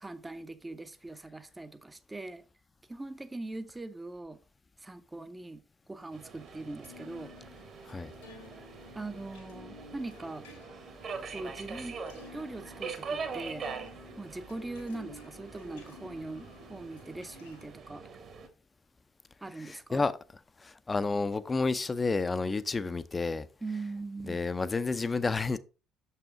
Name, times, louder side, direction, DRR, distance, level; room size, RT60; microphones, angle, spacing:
voice 1, 0.0-2.4 2.9-4.4 4.8-5.6 5.9-7.3 8.9-10.5 11.3-12.0 12.3-13.7 14.2-18.1 19.4-20.0 23.6-24.5, right 2 dB, 15° right, 0.7 m, -41 dB
sound 1, 6.0-17.7, left 2 dB, 85° left, 1.9 m, -52 dB
Subway metro underground, 6.1-18.5, right 5 dB, 45° right, 1.5 m, -43 dB
voice 2, 19.6-20.1 20.6-23.5 24.3-25.6, left 3 dB, 25° left, 0.6 m, -30 dB
7.0 x 5.6 x 3.7 m
figure-of-eight pair, 50°, 0 cm